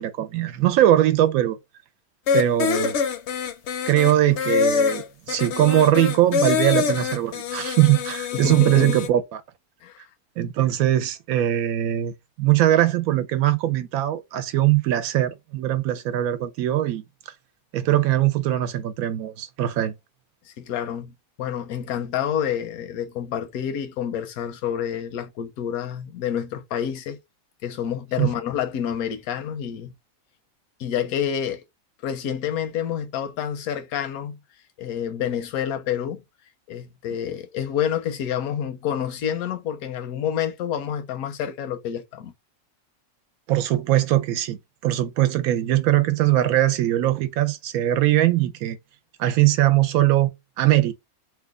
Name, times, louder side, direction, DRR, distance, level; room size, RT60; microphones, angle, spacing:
voice 1, 0.0-1.6 2.3-3.0 3.9-9.4 10.4-17.0 17.7-19.9 28.2-28.3 43.5-48.8 49.2-50.3 50.6-50.9, right 13 dB, 80° right, 1.0 m, -21 dB
sound 1, 2.3-9.1, left 6 dB, 65° left, 0.7 m, -25 dB
voice 2, 8.3-9.0 9.8-10.0 20.6-27.2 27.6-29.9 30.8-31.6 32.0-34.4 34.8-36.2 36.7-42.3, left 9 dB, 80° left, 1.1 m, -28 dB
3.1 x 2.2 x 3.5 m
omnidirectional pair, 1.5 m